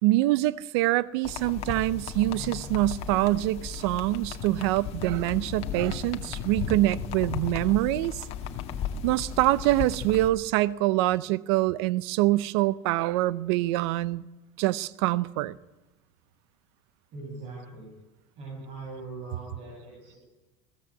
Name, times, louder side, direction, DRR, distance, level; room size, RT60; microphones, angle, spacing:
voice 1, 0.0-8.2 9.0-14.3 14.6-15.6, right 17 dB, 75° right, 0.7 m, -25 dB
sound 1, 1.2-10.3, left 7 dB, 45° left, 2.1 m, -35 dB
voice 2, 17.1-17.9 18.4-20.2, right 3 dB, 45° right, 7.4 m, -41 dB
20.5 x 17.0 x 8.5 m
supercardioid pair, 135°, 14 cm